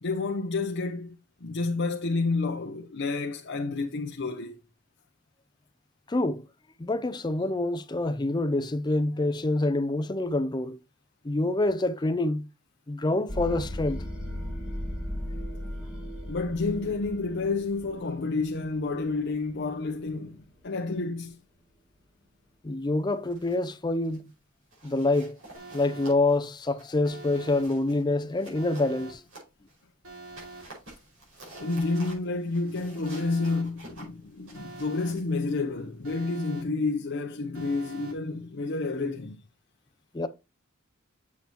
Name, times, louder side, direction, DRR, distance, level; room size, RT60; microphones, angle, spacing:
voice 1, 0.0-4.6 16.3-21.4 31.6-39.4, left 3 dB, 55° left, 0.7 m, -30 dB
voice 2, 6.1-6.4 6.8-10.8 11.2-12.5 12.9-14.0 22.6-24.3 24.8-25.4 25.7-29.2 40.1-40.3, left 2 dB, 20° left, 0.5 m, -26 dB
sound 1, 13.3-20.2, left 1 dB, 5° right, 2.0 m, -37 dB
sound 2, 23.1-23.7 24.0-24.3 24.7-29.8 30.2-36.1, right 2 dB, 70° right, 5.3 m, -51 dB
Alarm, 25.5-26.1 27.0-27.6 28.5-29.1 30.0-30.6 31.5-32.1 33.0-33.6 34.5-35.1 36.0-36.6 37.5-38.1, right 3 dB, 90° right, 3.0 m, -44 dB
7.4 x 7.2 x 2.9 m
head